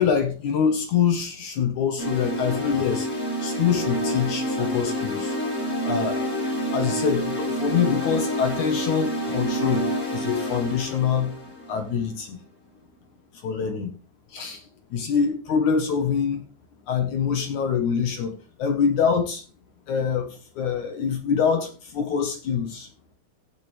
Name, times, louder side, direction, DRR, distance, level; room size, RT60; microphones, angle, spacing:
voice 1, 0.0-5.4 5.8-6.2 6.7-11.3 11.7-12.4 13.3-13.9 14.3-16.4 16.9-19.4 19.9-22.9, left 7 dB, 60° left, 2.3 m, -25 dB
sound 1, 2.0-12.1, equal, 15° left, 5.0 m, -28 dB
15.5 x 7.8 x 3.4 m
omnidirectional pair, 4.8 m